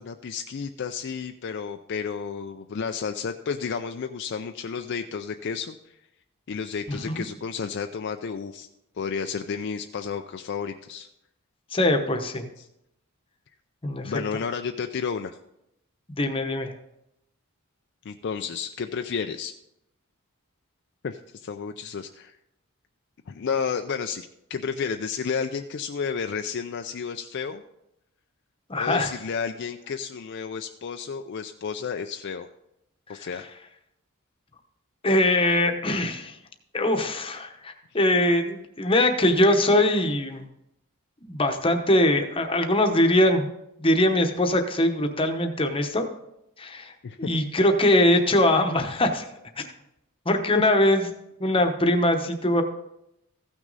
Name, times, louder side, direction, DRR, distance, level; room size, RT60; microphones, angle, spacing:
voice 1, 0.0-5.8 6.5-8.7 9.0-11.1 12.6-12.7 14.0-15.4 18.1-19.5 21.0-22.4 23.3-27.6 28.8-32.5 33.1-33.5 47.0-47.3 50.5-50.6, left 6 dB, 50° left, 6 dB, 0.4 m, -31 dB
voice 2, 6.9-7.2 11.7-12.5 13.8-14.1 16.1-16.7 28.7-29.1 35.0-36.4 36.7-40.5 41.2-43.5 43.8-46.0 46.6-46.9 47.2-49.3 50.3-51.0 51.4-52.6, left 1 dB, 25° left, 5 dB, 0.9 m, -22 dB
15.0 x 6.2 x 4.0 m, 0.84 s
head